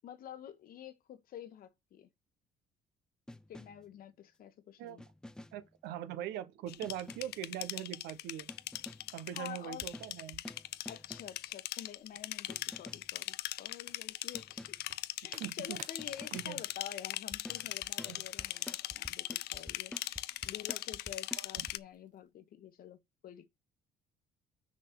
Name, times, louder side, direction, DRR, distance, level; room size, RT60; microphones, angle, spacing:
voice 1, 0.0-2.1 3.5-5.0 9.3-9.9 10.9-14.8 15.2-20.0 20.4-23.5, left 9 dB, 60° left, 1.1 m, -49 dB
sound 1, 3.3-3.9 5.0-5.7 6.8-7.4 8.5-9.2 9.8-11.4 12.5-13.2 14.3-14.9 16.0-16.6 17.3-21.7, left 1 dB, 5° left, 0.4 m, -50 dB
voice 2, 5.5-8.5 9.1-10.4 15.4-15.8 16.3-16.6 18.1-18.2 21.4-21.7, right 11 dB, 90° right, 0.8 m, -42 dB
sound 2, 6.7-21.8, left 17 dB, 75° left, 0.4 m, -40 dB
sound 3, 12.1-22.3, right 7 dB, 50° right, 1.1 m, -62 dB
6.1 x 4.1 x 6.0 m
cardioid pair, 110°, 17 cm